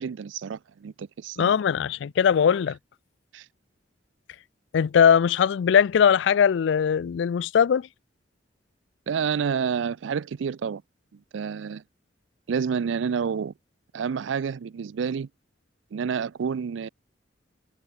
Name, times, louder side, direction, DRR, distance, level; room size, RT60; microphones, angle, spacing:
voice 1, 0.0-1.5 3.3-3.5 9.1-10.8 11.3-11.8 12.5-13.5 13.9-15.3 15.9-16.9, right 6 dB, 75° right, 0.4 m, -29 dB
voice 2, 1.4-2.8 4.7-7.9, left 7 dB, 70° left, 0.3 m, -20 dB
head